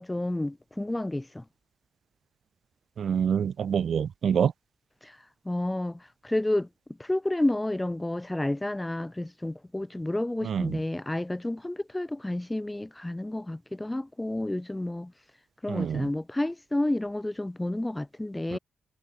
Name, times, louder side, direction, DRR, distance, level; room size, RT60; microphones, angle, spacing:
voice 1, 0.0-1.4 5.0-5.2 5.4-6.7 7.0-15.1 15.6-18.6, left 1 dB, 10° left, 1.3 m, -30 dB
voice 2, 3.0-4.5 10.4-10.8 15.7-16.0, right 7 dB, 60° right, 1.5 m, -26 dB
cardioid pair, 130°, 0 cm